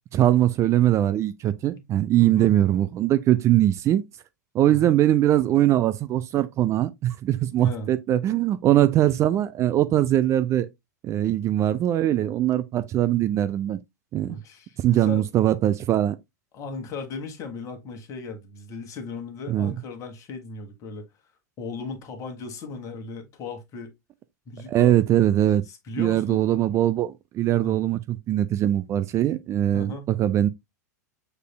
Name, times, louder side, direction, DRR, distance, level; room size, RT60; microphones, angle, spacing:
voice 1, 0.1-4.0 4.5-10.7 11.0-13.8 14.1-14.4 14.8-16.2 19.5-19.8 24.7-25.6 26.0-30.5, right 12 dB, 30° right, 0.4 m, -21 dB
voice 2, 2.2-2.5 4.7-5.0 7.6-7.9 8.8-8.9 14.3-15.3 16.5-21.1 21.6-23.9 24.5-24.9 25.7-26.5 27.6-27.8 29.7-30.1, left 3 dB, 35° left, 1.2 m, -36 dB
6.6 x 3.3 x 2.2 m
hypercardioid pair, 95°, 9 cm